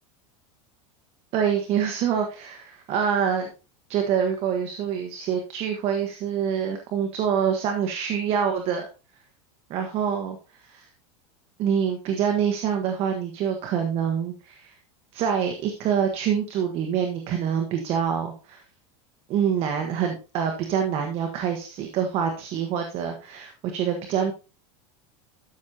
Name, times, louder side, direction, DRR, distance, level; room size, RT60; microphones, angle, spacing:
voice 1, 1.3-3.5 3.9-8.9 9.7-10.9 11.6-14.8 15.1-18.6 19.3-24.3, right 8 dB, 40° right, 4 dB, 1.3 m, -26 dB
12.5 x 6.2 x 2.8 m, 0.31 s
supercardioid pair, 160°, 16 cm